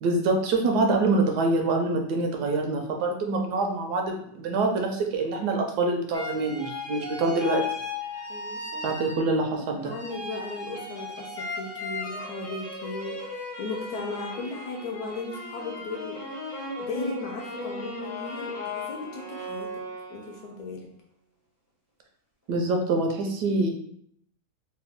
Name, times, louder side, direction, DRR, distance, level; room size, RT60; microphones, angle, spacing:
voice 1, 0.0-7.6 8.8-9.9 22.5-23.7, right 3 dB, 75° right, 2 dB, 1.1 m, -25 dB
sound 1, 6.1-9.5 9.9-20.5, left 3 dB, 20° left, 0.5 m, -36 dB
voice 2, 8.3-8.9 9.5-16.2 16.8-19.7 20.1-20.9, left 2 dB, 70° left, 1 dB, 1.0 m, -36 dB
3.2 x 2.2 x 3.4 m, 0.67 s
omnidirectional pair, 1.9 m